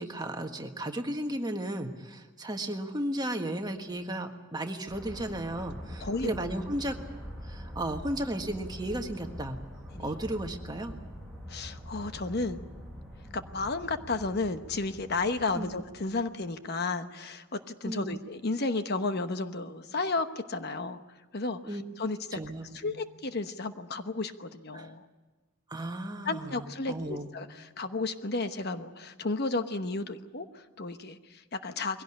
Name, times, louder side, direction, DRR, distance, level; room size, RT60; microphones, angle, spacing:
voice 1, 0.0-7.0 7.4-9.6 10.0-11.0 15.5-15.7 17.8-18.2 21.6-21.8 22.3-23.0 24.7-24.9 25.7-27.3, right 1 dB, 20° right, 5 dB, 1.5 m, -34 dB
sound 1, 4.9-16.5, equal, ahead, 7.5 m, -44 dB
voice 2, 6.0-6.3 9.9-10.1 11.5-12.6 13.3-21.0 21.3-22.4 22.7-25.1 26.2-32.0, left 3 dB, 50° left, 9 dB, 1.0 m, -33 dB
22.0 x 17.0 x 9.9 m, 1.2 s
head